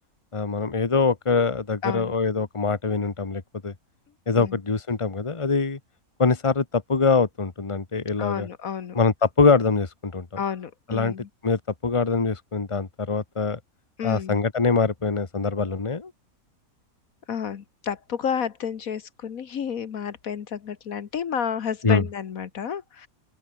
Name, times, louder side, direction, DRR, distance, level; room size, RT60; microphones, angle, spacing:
voice 1, 0.3-3.7 4.3-5.8 6.2-8.5 8.9-10.3 10.9-11.1 11.4-13.6 14.0-16.1 21.8-22.0, left 4 dB, 20° left, 1.5 m, -23 dB
voice 2, 1.8-2.1 4.3-4.6 8.2-9.0 10.4-11.3 14.0-14.4 17.3-23.1, left 7 dB, 70° left, 1.6 m, -31 dB
open air
omnidirectional pair, 1.5 m